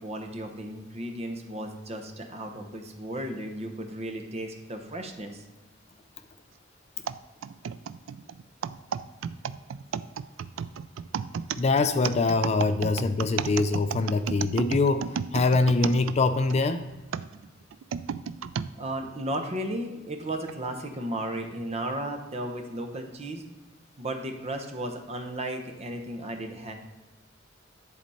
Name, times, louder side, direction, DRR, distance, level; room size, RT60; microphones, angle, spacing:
voice 1, 0.0-5.4 18.8-23.4 24.0-26.7, right 1 dB, 35° right, 4 dB, 0.9 m, -34 dB
sound 1, 7.1-16.6 17.1-18.7 19.3-19.4 20.3-20.5, right 7 dB, 85° right, 0.3 m, -33 dB
voice 2, 11.6-16.8, left 3 dB, 35° left, 9 dB, 0.4 m, -24 dB
10.5 x 4.2 x 4.2 m, 1.2 s
head